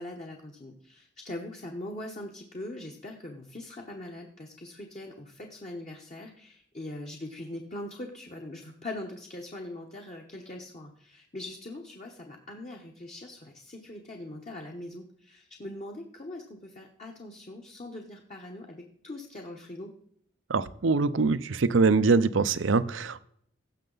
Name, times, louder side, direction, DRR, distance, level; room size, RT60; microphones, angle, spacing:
voice 1, 0.0-19.9, left 1 dB, 35° left, 1 dB, 1.1 m, -41 dB
voice 2, 20.5-23.2, right 4 dB, 85° right, 14 dB, 0.6 m, -23 dB
16.0 x 6.5 x 4.0 m, 0.66 s
head